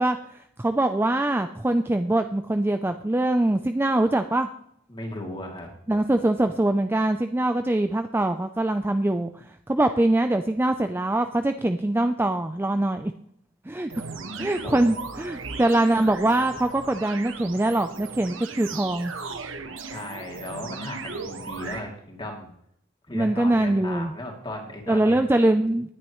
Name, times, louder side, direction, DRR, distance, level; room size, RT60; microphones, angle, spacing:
voice 1, 0.0-4.5 5.9-13.1 13.7-13.9 14.4-19.1 23.1-24.1 24.9-25.9, right 1 dB, 10° right, 7 dB, 0.4 m, -23 dB
voice 2, 4.9-5.7 14.6-14.8 19.9-22.5 23.1-25.2, left 1 dB, 25° left, 1 dB, 2.6 m, -36 dB
sound 1, 13.9-21.8, right 4 dB, 65° right, 1.4 m, -37 dB
19.0 x 9.5 x 3.1 m, 0.69 s
head